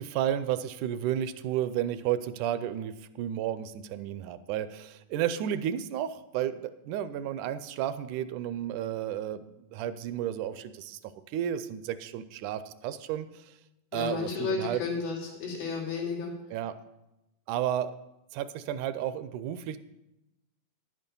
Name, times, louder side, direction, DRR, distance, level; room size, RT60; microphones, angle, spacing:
voice 1, 0.0-13.5 13.9-14.8 16.5-16.7 17.5-17.9 18.3-19.8, right 10 dB, 80° right, 13 dB, 1.9 m, -32 dB
voice 2, 13.9-16.3, left 5 dB, 90° left, -3 dB, 4.5 m, -32 dB
10.5 x 9.0 x 5.3 m, 0.93 s
omnidirectional pair, 3.8 m